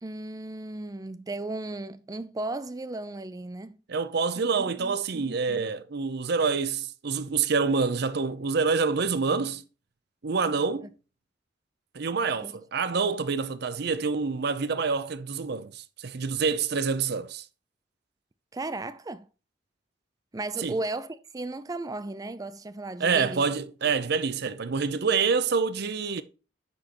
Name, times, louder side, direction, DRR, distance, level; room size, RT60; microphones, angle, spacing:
voice 1, 0.0-3.8 4.4-4.5 4.8-5.6 12.4-12.5 18.5-19.3 20.3-23.4, right 2 dB, 20° right, 0.4 m, -35 dB
voice 2, 3.9-9.6 10.2-10.9 11.9-17.4 20.6-20.8 23.0-26.2, right 5 dB, 60° right, 0.6 m, -27 dB
9.7 x 6.3 x 3.0 m
head